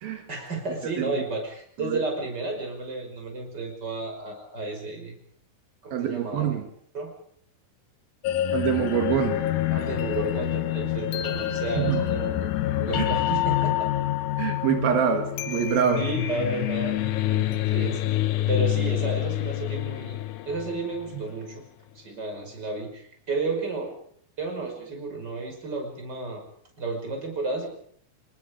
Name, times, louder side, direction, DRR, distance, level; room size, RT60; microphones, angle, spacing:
voice 1, 0.3-5.2 5.8-6.6 6.9-7.2 9.7-12.5 12.8-13.9 16.0-17.2 17.5-18.1 18.5-21.6 21.9-23.9 24.4-26.4 26.8-27.7, right 3 dB, 25° right, 2 dB, 6.1 m, -32 dB
voice 2, 5.9-6.7 8.5-9.4 11.8-12.0 13.0-13.1 14.4-16.0 17.3-17.6 21.1-21.2, right 8 dB, 80° right, 5 dB, 3.7 m, -25 dB
sound 1, 8.2-21.2, left 13 dB, 70° left, 2.2 m, -27 dB
29.0 x 20.0 x 5.2 m, 0.62 s
omnidirectional pair, 4.1 m